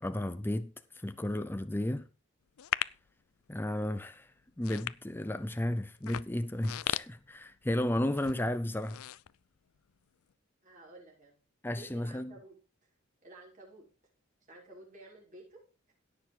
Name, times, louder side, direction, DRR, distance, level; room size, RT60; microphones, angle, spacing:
voice 1, 0.0-2.1 3.5-4.3 4.6-9.0 11.6-12.3, left 1 dB, 10° left, 0.5 m, -33 dB
sound 1, 2.6-3.1 3.7-4.0 4.5-5.5 6.0-7.9 8.1-8.4 8.7-9.9 10.3-10.4, left 12 dB, 80° left, 0.4 m, -37 dB
voice 2, 10.6-11.4 11.7-12.5 13.2-13.9 14.5-15.9, right 2 dB, 35° right, 6.0 m, -53 dB
17.0 x 6.8 x 3.7 m
head